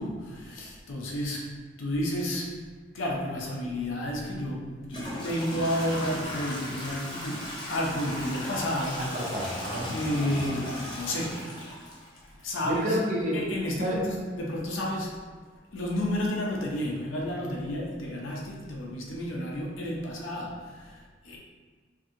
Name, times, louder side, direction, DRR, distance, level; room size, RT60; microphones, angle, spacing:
voice 1, 0.0-2.5 2.9-9.1 9.9-11.5 12.4-13.0 13.3-15.2 15.7-21.4, left 1 dB, 80° left, -2 dB, 0.6 m, -31 dB
Toilet flush / Trickle dribble, 4.1-4.2 4.8-12.6, left 1 dB, 25° left, 0.4 m, -36 dB
voice 2, 9.0-9.9 12.6-14.0, equal, 40° right, -3 dB, 0.5 m, -30 dB
2.6 x 2.6 x 2.5 m, 1.5 s
head